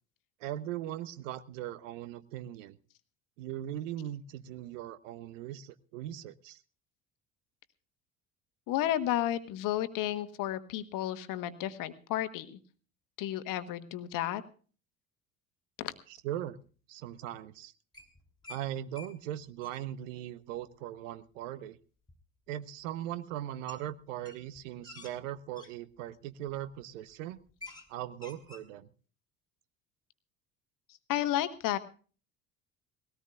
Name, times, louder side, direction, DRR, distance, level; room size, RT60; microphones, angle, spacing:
voice 1, 0.4-2.8 3.4-6.6 16.1-16.6 16.9-17.7 18.5-21.8 22.5-27.4 27.9-28.9, right 12 dB, 60° right, 15 dB, 1.0 m, -39 dB
voice 2, 8.7-12.6 13.2-14.4 15.8-15.9 31.1-31.8, left 12 dB, 50° left, 11 dB, 1.3 m, -32 dB
sound 1, 17.9-18.6 19.0-19.1 19.4-19.8 22.1-22.2 23.7-23.8 24.2-25.7 26.4-26.7 27.0-27.1 27.4-27.9 28.1-28.7, left 4 dB, 10° left, 3.4 m, -49 dB
20.5 x 17.5 x 2.5 m, 0.40 s
figure-of-eight pair, 60°, 42 cm